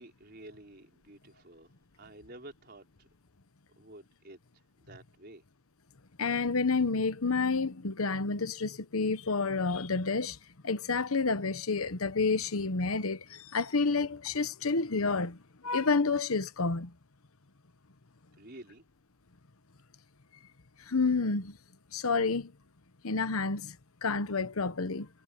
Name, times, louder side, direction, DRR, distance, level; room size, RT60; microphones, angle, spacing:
voice 1, 0.0-3.1 3.8-4.4 4.8-5.4 18.4-18.8, right 1 dB, 45° right, 4.8 m, -51 dB
voice 2, 6.2-10.4 10.6-15.4 15.6-16.9 20.9-21.6 21.9-22.5 23.0-23.8 24.0-25.1, left 4 dB, 80° left, 1.1 m, -29 dB
head